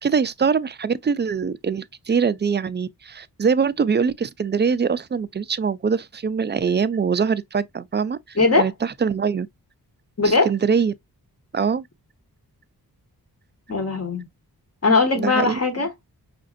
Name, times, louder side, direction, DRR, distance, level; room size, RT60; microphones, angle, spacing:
voice 1, 0.0-9.5 10.2-10.9 11.5-11.9 15.2-15.6, right 6 dB, 30° right, 0.3 m, -23 dB
voice 2, 8.4-8.7 10.2-10.5 13.7-14.2 14.8-15.9, left 3 dB, 40° left, 1.2 m, -19 dB
5.1 x 2.5 x 2.4 m
wide cardioid pair, 70°, 38 cm